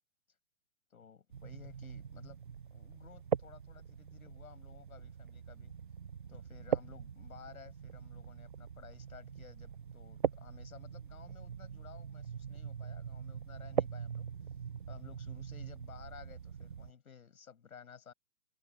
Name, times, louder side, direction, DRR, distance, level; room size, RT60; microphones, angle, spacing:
voice 1, 0.9-2.4 2.7-5.7 6.3-14.3 14.9-18.1, left 7 dB, 60° left, 7.9 m, -55 dB
sound 1, 1.3-16.9, right 7 dB, 35° right, 0.4 m, -41 dB
figure-of-eight pair, 115°, 47 cm